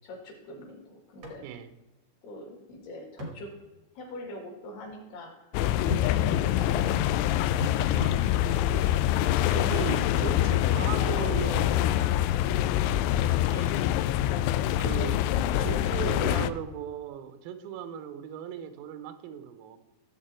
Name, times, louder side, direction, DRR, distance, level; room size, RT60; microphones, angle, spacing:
voice 1, 0.0-1.5 2.2-3.5 4.0-5.5 5.9-7.7 10.2-12.8, left 1 dB, 60° left, 1 dB, 3.6 m, -44 dB
sound 1, 1.2-1.4 1.7-1.8 3.2-3.4 5.9-6.1 7.6-8.2 9.8-9.9, right 1 dB, 65° right, 1.1 m, -36 dB
sound 2, 5.5-16.5, left 12 dB, 90° left, 2.7 m, -25 dB
voice 2, 7.9-8.3 9.5-11.7 13.5-13.9 14.8-15.3 15.6-19.8, right 8 dB, 90° right, 10 dB, 3.7 m, -37 dB
15.0 x 7.5 x 4.4 m, 1.1 s
omnidirectional pair, 5.9 m